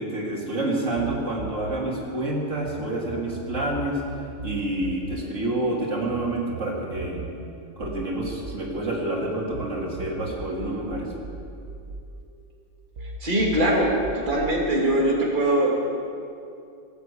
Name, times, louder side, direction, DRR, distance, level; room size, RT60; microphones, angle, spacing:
voice 1, 0.0-4.0 4.4-7.2 7.8-11.1, right 1 dB, 85° right, -3 dB, 3.0 m, -28 dB
sound 1, 1.0-2.8 3.1-9.7 10.0-12.6 13.0-14.6, right 3 dB, 65° right, 1.3 m, -38 dB
voice 2, 13.0-15.7, right 1 dB, 40° right, -3 dB, 2.5 m, -22 dB
19.0 x 8.1 x 8.4 m, 2.5 s
omnidirectional pair, 1.3 m